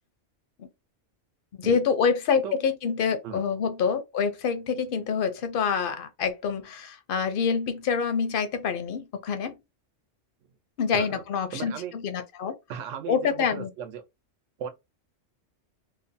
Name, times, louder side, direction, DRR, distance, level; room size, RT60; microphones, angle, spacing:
voice 1, 1.6-9.5 10.8-12.5 13.1-13.7, left 6 dB, 60° left, 0.6 m, -26 dB
voice 2, 11.5-11.9 12.7-14.0 14.6-14.7, right 8 dB, 85° right, 0.9 m, -36 dB
2.7 x 2.1 x 2.6 m
omnidirectional pair, 1.3 m